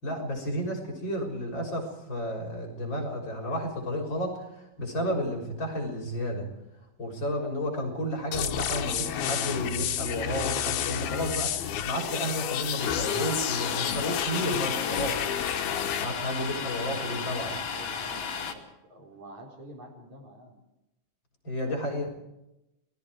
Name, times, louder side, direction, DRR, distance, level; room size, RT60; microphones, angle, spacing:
voice 1, 0.0-6.5 7.0-15.3 16.0-17.5 21.4-22.1, equal, 30° left, 1 dB, 7.0 m, -32 dB
sound 1, 8.3-16.1, left 10 dB, 85° left, 3.2 m, -30 dB
voice 2, 8.8-9.5 16.3-20.6 21.5-21.8, right 1 dB, 50° right, 0 dB, 5.6 m, -47 dB
Domestic sounds home sounds, 12.8-18.5, left 6 dB, 60° left, 3.8 m, -34 dB
30.0 x 20.5 x 4.9 m, 0.91 s
omnidirectional pair, 4.3 m